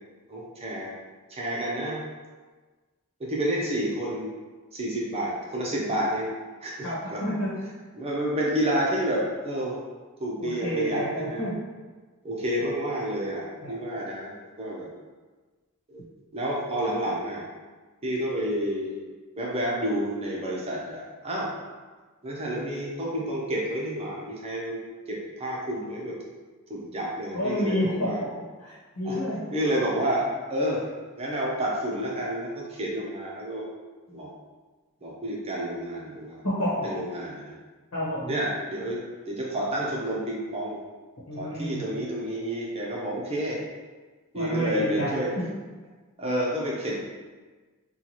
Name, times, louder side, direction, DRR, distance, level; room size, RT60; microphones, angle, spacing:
voice 1, 0.3-0.9 1.3-2.0 3.2-4.3 4.7-6.3 6.6-7.2 7.9-9.8 10.2-11.5 12.2-14.9 15.9-16.0 16.3-17.4 18.0-19.0 19.4-21.5 22.2-24.8 25.1-26.2 26.7-28.2 29.0-29.2 29.5-30.8 31.2-33.7 34.1-34.3 35.0-36.4 36.8-37.5 38.3-40.8 41.4-43.6 44.3-45.3 46.2-47.1, right 1 dB, 30° right, -4 dB, 0.7 m, -29 dB
voice 2, 6.8-7.5 10.4-11.5 13.6-13.8 27.3-28.3 28.6-29.4 36.4-36.9 37.9-38.3 41.3-41.8 44.3-45.2, equal, 75° left, -7 dB, 1.1 m, -29 dB
4.4 x 2.3 x 2.9 m, 1.3 s
head